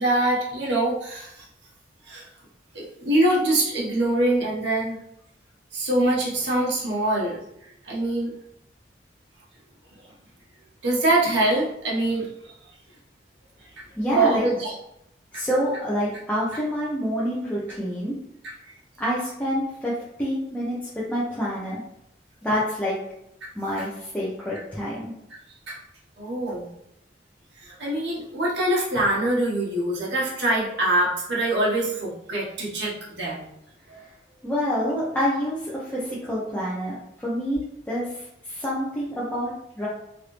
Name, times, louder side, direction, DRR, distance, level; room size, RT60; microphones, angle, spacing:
voice 1, 0.0-1.3 2.1-2.2 2.7-5.0 5.7-7.4 7.8-8.3 10.8-12.3 13.8-13.9 14.1-14.7 15.3-15.4 18.4-18.5 23.4-23.5 25.7-25.8 26.2-26.7 27.6-33.4 33.9-34.0, right 1 dB, 85° right, -5 dB, 1.1 m, -24 dB
voice 2, 14.0-14.4 15.3-18.1 19.0-21.8 22.4-23.0 23.6-25.1 34.0-34.1 34.4-39.9, equal, 10° left, -8 dB, 0.5 m, -27 dB
3.2 x 2.6 x 3.1 m, 0.79 s
head